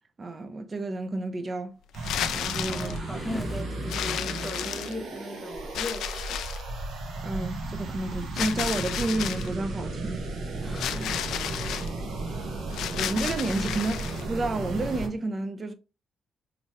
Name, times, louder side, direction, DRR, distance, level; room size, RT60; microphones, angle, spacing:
voice 1, 0.2-1.8 2.3-3.0 7.2-10.2 12.9-15.7, right 2 dB, 35° right, 0.5 m, -31 dB
sound 1, 1.9-3.0 3.9-5.2 5.7-6.7 8.4-9.5 10.7-11.9 12.7-14.2, left 10 dB, 80° left, 0.3 m, -32 dB
sound 2, 1.9-15.1, right 2 dB, 75° right, 1.2 m, -34 dB
sound 3, 2.5-5.9, left 1 dB, 15° left, 0.6 m, -40 dB
voice 2, 2.7-6.4 7.1-7.3 10.6-11.8 12.3-12.6, left 1 dB, 5° right, 1.3 m, -39 dB
3.9 x 3.0 x 3.1 m
cardioid pair, 90°, 0 cm